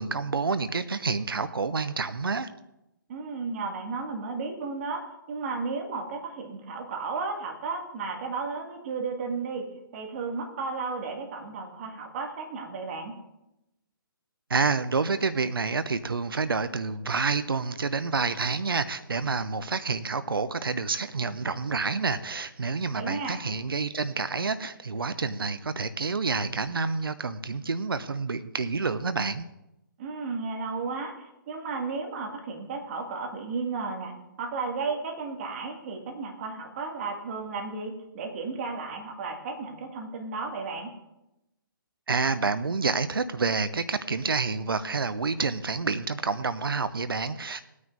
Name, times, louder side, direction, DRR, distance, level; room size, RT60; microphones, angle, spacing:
voice 1, 0.0-2.5 14.5-29.4 42.1-47.6, right 4 dB, 80° right, 12 dB, 0.6 m, -28 dB
voice 2, 3.1-5.0 5.3-9.7 9.9-13.1 22.9-23.4 30.0-31.1 31.5-34.1 34.4-40.9, right 4 dB, 35° right, 1 dB, 2.2 m, -33 dB
18.0 x 9.5 x 2.7 m, 0.89 s
figure-of-eight pair, 140°, 12 cm